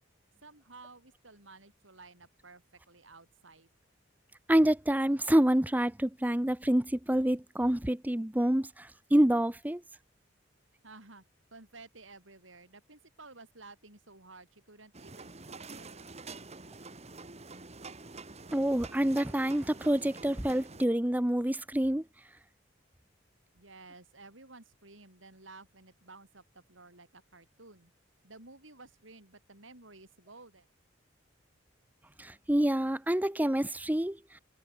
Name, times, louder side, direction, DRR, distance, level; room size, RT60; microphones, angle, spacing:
voice 1, 0.4-3.7 10.8-11.2 11.5-16.2 23.5-27.9 28.2-30.7, right 3 dB, 75° right, 7.5 m, -54 dB
voice 2, 4.5-9.8 18.5-22.0 32.2-34.4, right 1 dB, 10° right, 0.7 m, -27 dB
sound 1, 14.9-20.8, right 3 dB, 35° right, 2.2 m, -47 dB
head